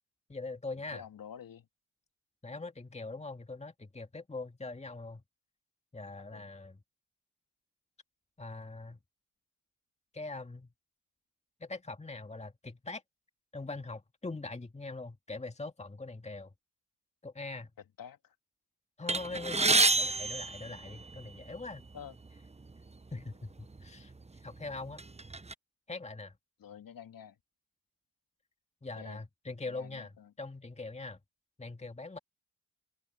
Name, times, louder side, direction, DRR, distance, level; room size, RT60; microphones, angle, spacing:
voice 1, 0.3-1.0 2.4-5.2 5.9-6.8 8.4-9.0 10.1-10.7 11.6-13.0 13.5-16.5 17.2-17.7 19.0-21.8 23.1-24.1 24.4-25.0 25.9-26.3 28.8-30.1 30.4-31.2 31.6-32.2, left 3 dB, 15° left, 2.1 m, -42 dB
voice 2, 0.9-1.7 6.3-6.5 18.0-18.3 21.9-22.1 26.6-27.4 29.0-29.2 29.7-30.3, left 8 dB, 55° left, 2.9 m, -48 dB
sound 1, 19.1-21.4 22.2-22.4 22.7-22.9 23.7-23.9 24.4-25.5, right 3 dB, 15° right, 1.2 m, -29 dB
open air
hypercardioid pair, 45°, 39 cm